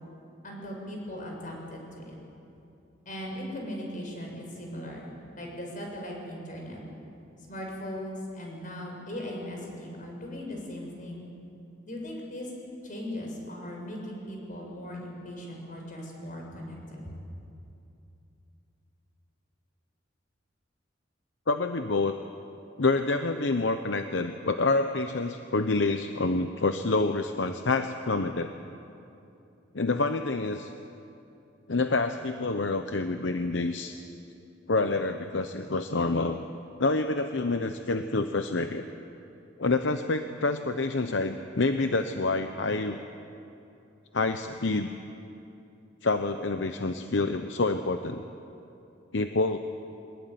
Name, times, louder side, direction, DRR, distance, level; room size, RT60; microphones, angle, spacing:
voice 1, 0.4-2.2 3.0-6.8 7.5-11.3 11.8-12.5 12.8-17.1, equal, 45° left, 0 dB, 6.5 m, -38 dB
voice 2, 21.5-22.2 22.8-28.5 29.7-30.7 31.7-34.0 34.7-36.5 36.8-38.8 39.6-43.0 44.1-44.9 46.0-48.2 49.1-49.6, left 3 dB, 70° left, 8 dB, 0.9 m, -27 dB
23.0 x 21.0 x 9.4 m, 2.7 s
head